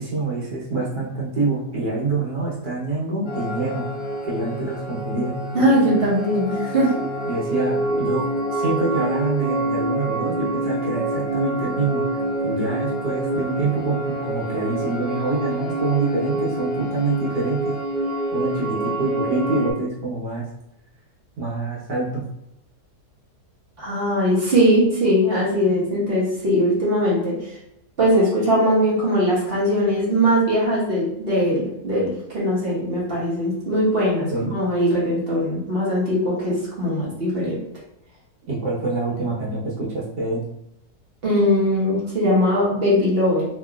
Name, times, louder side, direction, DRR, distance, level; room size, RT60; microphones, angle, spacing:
voice 1, 0.0-3.9 4.3-5.3 7.3-12.1 12.4-17.8 18.3-20.4 21.4-22.2 34.3-34.5 38.5-40.4, right 3 dB, 75° right, -5 dB, 1.5 m, -26 dB
sound 1, 3.2-19.7, right 1 dB, 40° left, 1.0 m, -26 dB
voice 2, 5.5-7.0 23.8-27.6 28.0-37.6 41.2-43.5, equal, 45° right, -6 dB, 1.0 m, -20 dB
2.9 x 2.9 x 2.4 m, 0.83 s
omnidirectional pair, 1.7 m